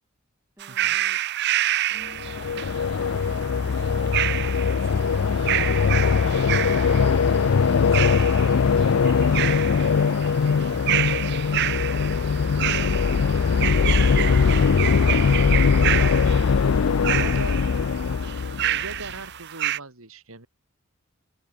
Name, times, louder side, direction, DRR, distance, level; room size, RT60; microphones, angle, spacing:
voice 1, 0.6-1.2 1.9-6.9, equal, 10° right, 2.6 m, -51 dB
sound 1, 0.6-19.8, right 13 dB, 55° right, 0.6 m, -29 dB
sound 2, 2.1-19.1, left 5 dB, 75° left, 0.5 m, -21 dB
voice 2, 14.2-14.7 17.1-17.6 18.7-20.5, right 3 dB, 90° right, 4.1 m, -39 dB
head